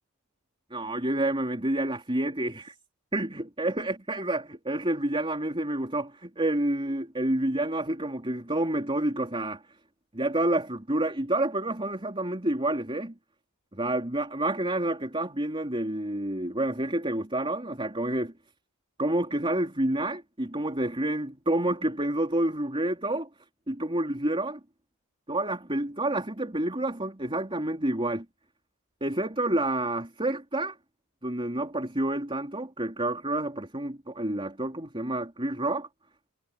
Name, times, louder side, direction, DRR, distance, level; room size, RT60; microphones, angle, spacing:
voice 1, 0.7-2.7 3.1-9.6 10.1-13.1 13.7-18.3 19.0-23.3 23.7-24.6 25.3-28.3 29.0-30.8 31.2-35.9, right 1 dB, 25° right, 3.8 m, -29 dB
head